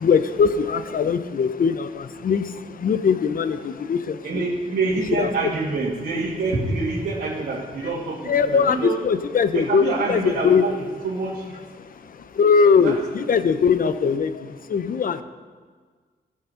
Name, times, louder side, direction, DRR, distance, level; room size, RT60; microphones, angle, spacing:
voice 1, 0.0-4.4 5.2-5.3 8.3-9.8 10.1-10.6 12.3-15.2, left 6 dB, 55° left, 11 dB, 0.7 m, -21 dB
voice 2, 4.2-9.0 9.5-11.6 12.8-13.1, right 3 dB, 75° right, -6 dB, 2.0 m, -26 dB
15.5 x 6.4 x 5.7 m, 1.5 s
wide cardioid pair, 115°, 17 cm